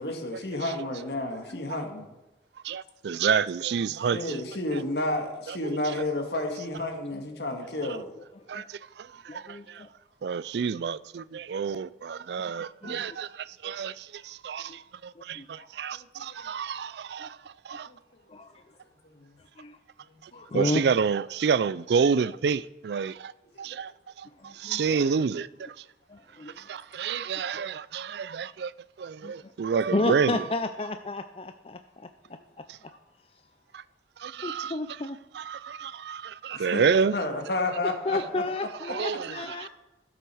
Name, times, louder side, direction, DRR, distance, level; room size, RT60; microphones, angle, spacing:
voice 1, 0.0-2.1 4.1-8.1 15.6-15.7 15.9-16.4 17.9-18.0 18.2-18.4 19.0-19.3 20.0-20.4 26.7-26.8 32.3-32.4 36.5-38.4, left 2 dB, 70° left, 2.1 m, -32 dB
voice 2, 2.6-4.4 8.5-9.8 10.2-17.4 17.7-17.9 20.5-23.3 23.6-23.9 24.2-25.5 26.6-28.7 29.0-30.4 33.7-33.8 34.2-34.7 35.3-37.1 39.0-39.3, right 6 dB, 70° right, 0.4 m, -29 dB
voice 3, 9.3-9.9 12.8-13.2 14.7-14.8 15.2-15.5 17.2-17.3 18.3-18.6 19.6-19.8 20.3-20.8 24.4-25.0 26.1-26.6 27.5-27.6 29.2-29.5 29.9-32.1 34.4-35.2 38.1-39.7, left 2 dB, 30° left, 0.4 m, -32 dB
12.0 x 7.9 x 6.3 m
head